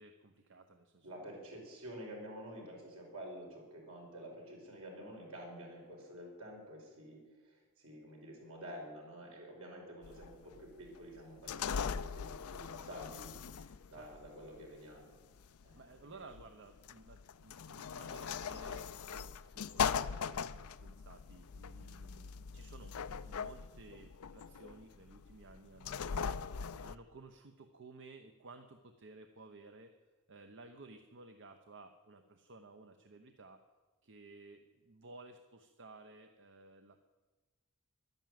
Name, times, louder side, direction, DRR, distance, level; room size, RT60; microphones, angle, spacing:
voice 1, 0.0-1.6 13.9-14.1 15.7-26.6 26.8-29.9 30.3-33.7 34.0-37.0, right 3 dB, 60° right, 7 dB, 0.8 m, -56 dB
voice 2, 1.0-15.2 15.6-16.2, equal, 75° right, -1 dB, 5.5 m, -50 dB
sound 1, 10.0-27.0, left 6 dB, 85° left, 0.5 m, -41 dB
12.0 x 11.0 x 9.3 m, 1.3 s
head